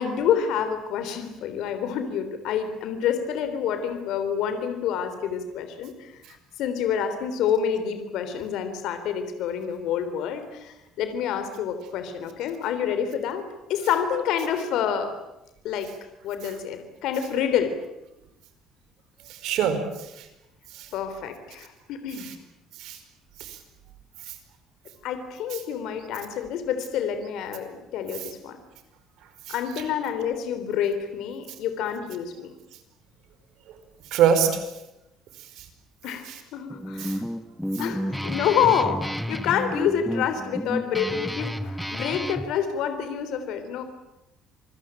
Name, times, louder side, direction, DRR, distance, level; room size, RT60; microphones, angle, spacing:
voice 1, 0.0-6.2 6.6-13.4 13.7-15.1 15.6-15.9 16.2-17.7 20.9-22.3 25.0-28.6 29.5-32.5 36.0-37.2 37.8-43.8, left 8 dB, 65° left, 9 dB, 3.4 m, -28 dB
voice 2, 19.3-20.2 20.7-20.9 22.2-22.3 22.8-23.0 23.4-23.6 24.3-24.4 29.5-29.6 34.1-34.6 35.6-35.7 36.3-36.4 37.0-37.2, right 8 dB, 65° right, 8 dB, 5.0 m, -25 dB
Guitar, 36.7-42.5, equal, ahead, 1.0 m, -31 dB
27.5 x 21.5 x 9.0 m, 0.90 s
cardioid pair, 165°, 0 cm